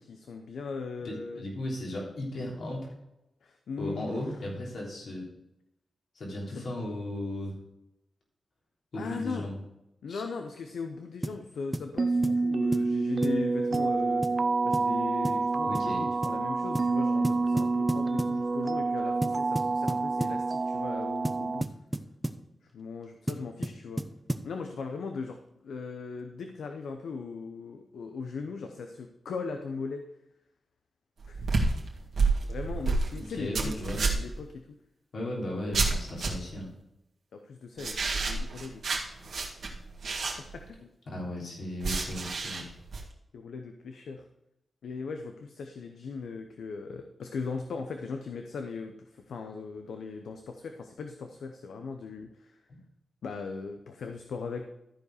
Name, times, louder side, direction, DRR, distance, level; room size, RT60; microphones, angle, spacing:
voice 1, 0.0-1.4 3.4-4.4 6.5-6.7 8.9-9.5 10.0-14.3 14.6-21.7 22.7-24.0 24.4-30.0 31.3-31.4 32.5-34.6 37.3-38.9 39.5-39.6 40.4-40.9 43.3-44.3 44.8-52.6 53.2-54.7, left 4 dB, 90° left, 5 dB, 0.7 m, -39 dB
voice 2, 1.0-2.9 3.8-5.3 6.2-7.6 8.9-9.6 10.1-10.2 15.7-16.0 33.2-34.0 35.1-36.7 41.1-42.6, left 1 dB, 70° left, -3 dB, 3.5 m, -36 dB
sound 1, 11.2-11.4 11.7-11.9 12.2-12.4 12.7-12.9 13.2-13.4 13.7-13.9 14.2-14.4 14.7-14.9 15.2-15.5 15.7-15.9 16.2-16.4 16.8-17.0 17.2-18.4 19.2-20.4 21.2-22.4 23.3-24.5, right 1 dB, 15° right, 0.8 m, -33 dB
sound 2, 12.0-21.6, right 3 dB, 50° right, 0.3 m, -28 dB
sound 3, 31.2-34.4 35.7-36.6 37.8-40.7 41.8-43.0, right 3 dB, 75° right, 1.8 m, -29 dB
13.5 x 4.9 x 4.9 m, 0.87 s
cardioid pair, 60°, 0 cm